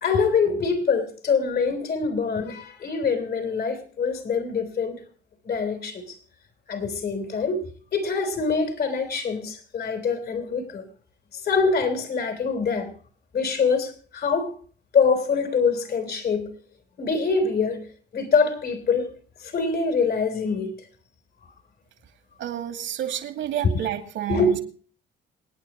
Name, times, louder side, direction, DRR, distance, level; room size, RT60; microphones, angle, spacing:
voice 1, 0.0-5.0 5.5-6.2 6.7-7.6 7.9-10.8 11.4-12.9 13.3-14.5 14.9-16.5 17.0-17.8 18.1-19.1 19.4-20.7 23.6-23.9 24.3-24.6, left 5 dB, 50° left, 7 dB, 3.5 m, -24 dB
voice 2, 22.4-24.6, right 11 dB, 70° right, 5 dB, 2.5 m, -30 dB
27.5 x 9.5 x 3.0 m, 0.43 s
supercardioid pair, 80°, 20 cm